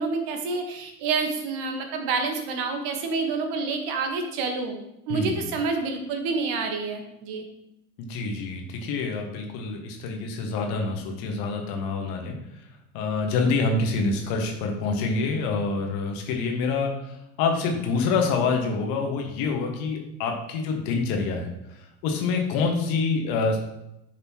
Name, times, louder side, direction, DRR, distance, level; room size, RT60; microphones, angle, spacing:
voice 1, 0.0-4.8 5.1-7.4, right 4 dB, 50° right, 5 dB, 1.4 m, -28 dB
voice 2, 5.1-5.4 8.0-12.4 12.9-21.5 22.0-23.6, left 4 dB, 50° left, 2 dB, 1.6 m, -26 dB
10.5 x 5.3 x 3.0 m, 0.86 s
figure-of-eight pair, 75°, 44 cm